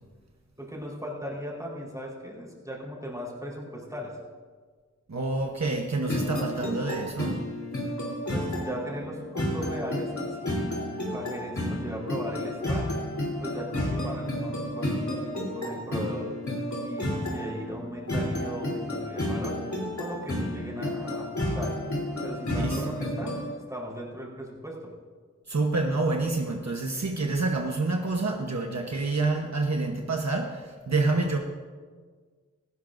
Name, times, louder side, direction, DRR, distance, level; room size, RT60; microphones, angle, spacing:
voice 1, 0.6-4.2 8.3-10.7 11.1-12.9 13.4-15.2 15.5-16.3 16.8-19.6 19.9-21.7 22.2-23.4 23.7-24.9, equal, 10° right, -4 dB, 4.1 m, -37 dB
voice 2, 5.1-7.5 22.6-22.9 25.5-31.4, right 3 dB, 65° right, 1 dB, 1.1 m, -28 dB
sound 1, 6.1-23.5, left 1 dB, 75° left, 3.4 m, -31 dB
17.5 x 16.0 x 2.6 m, 1.6 s
wide cardioid pair, 50°, 29 cm